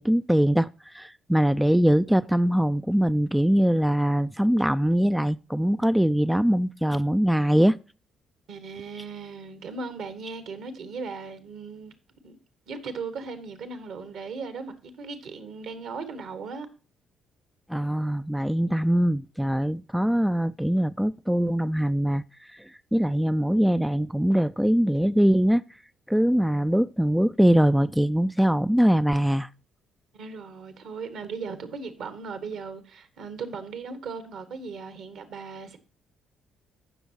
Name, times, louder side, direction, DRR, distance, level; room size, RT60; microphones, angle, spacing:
voice 1, 0.0-7.8 17.7-25.6 26.1-29.5, equal, 5° right, 0.3 m, -22 dB
voice 2, 8.5-11.9 12.2-12.4 12.7-16.7 30.1-35.8, right 4 dB, 65° right, 1.4 m, -37 dB
16.0 x 6.2 x 2.9 m
hypercardioid pair, 45°, 0 cm